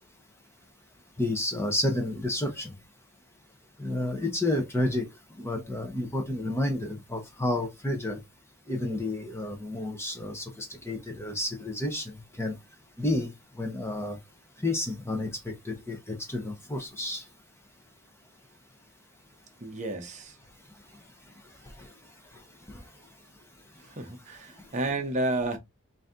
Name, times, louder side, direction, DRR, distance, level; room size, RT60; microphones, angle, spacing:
voice 1, 1.2-2.7 3.8-5.0 5.4-8.2 8.7-12.5 13.0-13.3 13.6-14.2 14.6-17.2, left 1 dB, 10° left, 0.8 m, -30 dB
voice 2, 19.6-20.4 23.8-25.6, right 2 dB, 30° right, 0.7 m, -31 dB
4.0 x 2.7 x 3.5 m
head